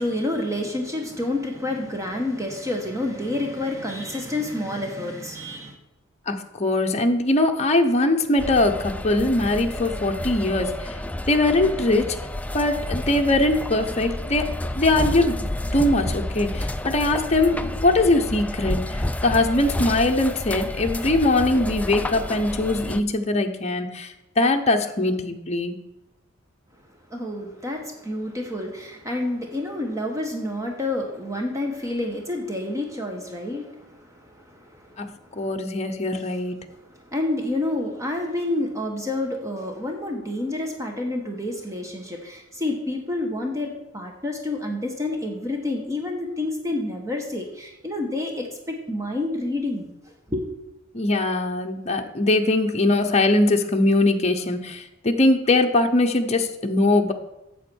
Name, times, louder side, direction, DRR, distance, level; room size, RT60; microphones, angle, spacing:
voice 1, 0.0-5.8 27.1-35.5 36.8-50.5, left 2 dB, 15° right, 2 dB, 1.2 m, -29 dB
voice 2, 6.3-11.0 11.3-12.1 12.5-15.3 15.7-25.8 35.0-35.1 35.4-36.6 50.9-57.1, left 2 dB, 35° left, 4 dB, 0.8 m, -21 dB
sound 1, 8.4-23.0, left 1 dB, 5° left, 0.4 m, -30 dB
8.3 x 7.2 x 6.2 m, 0.94 s
head